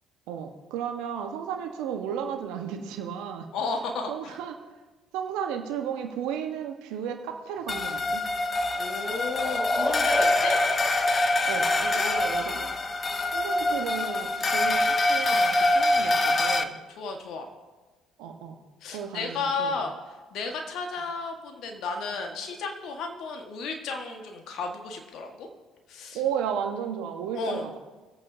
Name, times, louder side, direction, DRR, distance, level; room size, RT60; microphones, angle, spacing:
voice 1, 0.3-3.5 4.1-4.6 5.1-8.2 11.4-12.7 13.3-16.8 18.2-18.6 18.9-19.8 26.1-27.8, right 8 dB, 75° right, 4 dB, 1.4 m, -34 dB
voice 2, 3.5-4.3 8.7-10.6 12.0-12.2 17.0-17.5 18.8-19.9 20.3-25.5 25.9-26.2 27.3-27.6, left 4 dB, 65° left, 4 dB, 1.7 m, -33 dB
sound 1, 7.7-16.6, left 2 dB, 35° left, 0.9 m, -25 dB
sound 2, 7.7-12.4, left 1 dB, 15° left, 1.6 m, -32 dB
25.0 x 8.6 x 2.8 m, 1.3 s
hypercardioid pair, 55°, 0 cm